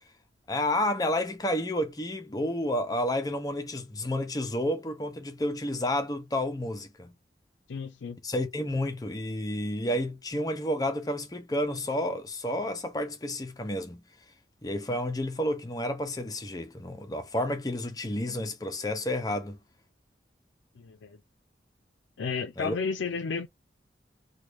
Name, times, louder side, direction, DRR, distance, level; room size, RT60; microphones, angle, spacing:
voice 1, 0.5-7.1 8.2-14.0 14.6-19.6 22.6-22.8, left 1 dB, 20° left, 0.5 m, -30 dB
voice 2, 7.7-8.2 20.8-21.2 22.2-23.5, left 5 dB, 90° left, 0.4 m, -32 dB
3.0 x 2.3 x 3.3 m
head